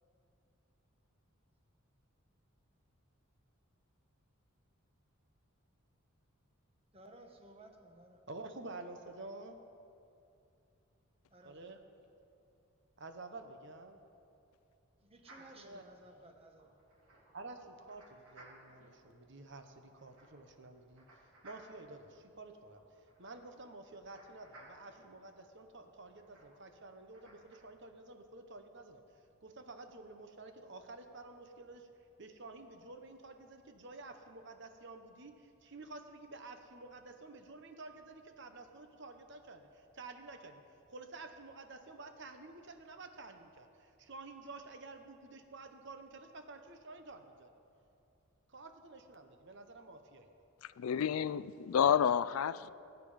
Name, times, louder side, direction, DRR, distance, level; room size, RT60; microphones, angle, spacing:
voice 1, 6.9-8.2 11.3-11.9 15.0-16.8, right 1 dB, 25° right, 4 dB, 1.2 m, -57 dB
voice 2, 8.3-9.6 11.4-11.8 13.0-14.0 15.6-15.8 17.3-21.0 21.4-22.8 23.2-29.0 29.4-31.9 32.2-40.6 40.9-47.5 48.5-50.3, right 3 dB, 55° right, 6 dB, 1.1 m, -50 dB
sound 1, 15.2-27.6, right 1 dB, 80° right, 3.6 m, -62 dB
voice 3, 50.6-52.7, left 8 dB, 75° left, 17 dB, 0.4 m, -30 dB
21.0 x 9.4 x 5.1 m, 2.6 s
head